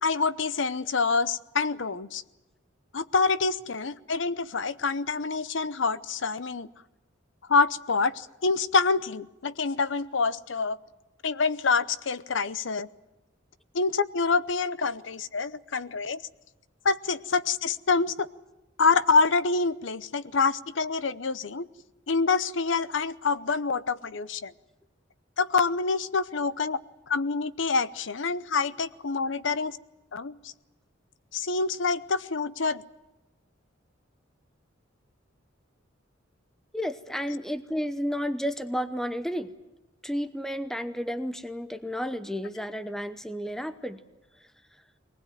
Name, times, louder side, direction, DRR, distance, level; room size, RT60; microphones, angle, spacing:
voice 1, 0.0-2.2 2.9-6.7 7.5-10.8 11.2-12.9 13.7-16.2 16.8-18.3 18.8-21.7 22.1-24.5 25.4-26.8 27.1-29.8 30.1-30.5 31.3-32.8, left 4 dB, 70° left, 15 dB, 0.8 m, -26 dB
voice 2, 36.7-39.5 40.0-44.0, equal, ahead, 9 dB, 0.8 m, -32 dB
22.5 x 19.5 x 9.2 m, 1.0 s
head